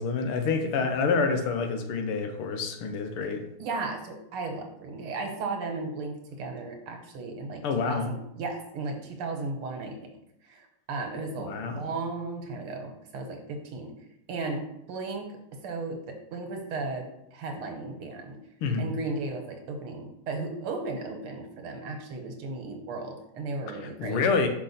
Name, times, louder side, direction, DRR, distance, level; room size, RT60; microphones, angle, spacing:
voice 1, 0.0-3.4 7.6-8.1 11.3-11.8 18.6-18.9 23.7-24.5, left 4 dB, 80° left, 6 dB, 1.8 m, -28 dB
voice 2, 3.6-10.1 10.4-13.9 14.3-18.4 18.8-24.2, right 3 dB, 80° right, 4 dB, 1.9 m, -35 dB
5.8 x 5.3 x 4.1 m, 0.79 s
omnidirectional pair, 2.4 m